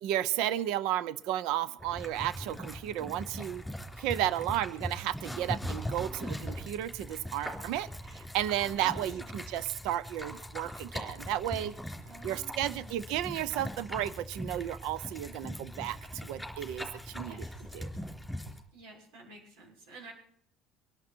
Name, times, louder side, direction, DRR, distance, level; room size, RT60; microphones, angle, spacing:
voice 1, 0.0-3.6 4.0-11.7 12.2-17.5 17.7-17.9, right 12 dB, 65° right, 18 dB, 0.7 m, -33 dB
sound 1, 1.8-18.6, equal, ahead, 3.5 m, -41 dB
voice 2, 8.8-9.5 12.1-13.0 17.2-17.6 18.7-20.1, right 2 dB, 85° right, -1 dB, 6.8 m, -51 dB
25.0 x 11.5 x 4.5 m, 0.70 s
cardioid pair, 165°, 0 cm